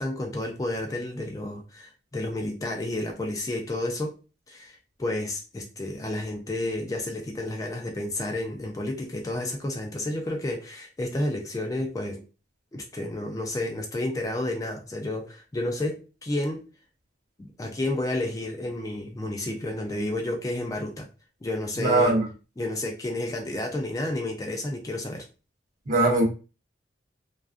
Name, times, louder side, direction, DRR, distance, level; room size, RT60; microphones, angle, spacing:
voice 1, 0.0-4.2 4.5-12.2 12.7-16.7 17.4-21.1 21.4-22.2 22.6-25.3, left 1 dB, 20° left, 0.3 m, -31 dB
voice 2, 21.8-22.3 25.9-26.2, right 2 dB, 45° right, 0.7 m, -21 dB
2.4 x 2.3 x 2.4 m
head